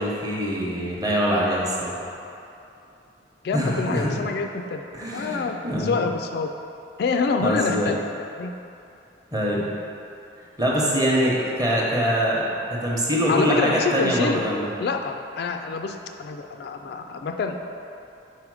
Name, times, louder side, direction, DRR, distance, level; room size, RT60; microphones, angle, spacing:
voice 1, 0.0-2.0 3.5-4.1 4.9-5.9 7.4-7.9 9.3-9.7 10.6-14.6, equal, 20° right, -4 dB, 0.9 m, -24 dB
voice 2, 3.4-4.8 5.1-6.5 7.0-8.5 11.1-11.8 13.3-14.4 14.8-17.6, left 4 dB, 60° left, 5 dB, 0.3 m, -27 dB
4.9 x 4.4 x 4.8 m, 2.7 s
head